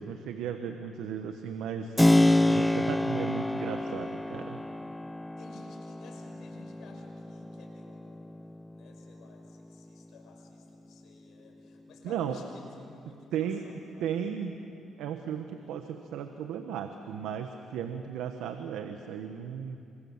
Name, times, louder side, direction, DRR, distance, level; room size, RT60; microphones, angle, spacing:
voice 1, 0.0-2.0 2.4-4.6 12.0-12.4 13.3-13.6 14.0-14.6 15.0-19.8, right 8 dB, 90° right, 6 dB, 1.2 m, -35 dB
Keyboard (musical), 2.0-10.5, left 1 dB, 10° left, 0.7 m, -28 dB
voice 2, 5.4-8.4 8.7-14.3, left 4 dB, 75° left, 2 dB, 5.5 m, -54 dB
28.0 x 25.5 x 7.4 m, 2.6 s
cardioid pair, 90°, 0 cm